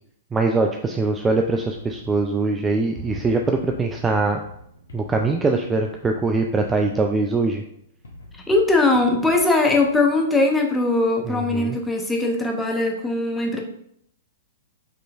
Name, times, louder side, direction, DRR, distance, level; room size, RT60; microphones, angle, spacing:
voice 1, 0.3-4.4 4.9-7.6 11.3-11.8, right 3 dB, 15° right, 3 dB, 0.3 m, -22 dB
sound 1, 1.7-10.4, left 1 dB, 75° left, 0.9 m, -45 dB
Bowed string instrument, 2.9-6.3, right 4 dB, 85° right, 1.3 m, -45 dB
voice 2, 8.3-13.6, left 2 dB, 5° left, 1 dB, 0.7 m, -20 dB
4.8 x 3.0 x 2.4 m, 0.71 s
figure-of-eight pair, 110°, 0 cm